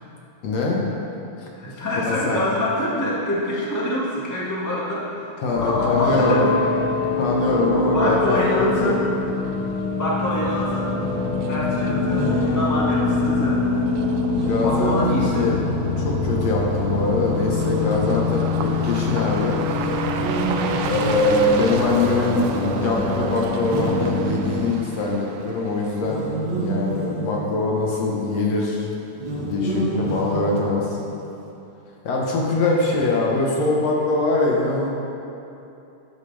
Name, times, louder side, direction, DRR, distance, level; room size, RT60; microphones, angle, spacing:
voice 1, 0.4-0.8 1.4-1.5 2.0-2.4 5.4-6.5 7.2-9.0 14.3-15.5 16.0-19.9 20.9-26.3 26.5-28.9 29.4-31.0 32.0-34.9, left 3 dB, 60° left, -2 dB, 2.1 m, -23 dB
voice 2, 1.5-5.3 5.6-6.7 7.9-9.0 10.0-10.9 11.5-13.6 14.6-15.5, left 1 dB, 15° left, -6 dB, 0.7 m, -26 dB
sound 1, 5.6-24.7, left 4 dB, 80° left, 2.0 m, -24 dB
sound 2, 6.7-26.0, right 6 dB, 75° right, 2.0 m, -35 dB
sound 3, 12.0-13.1 14.2-16.2 17.4-18.5 19.7-21.8 23.6-25.0 26.0-27.9 29.1-31.1, right 3 dB, 50° right, 1.5 m, -29 dB
12.0 x 11.0 x 3.4 m, 2.8 s
omnidirectional pair, 3.7 m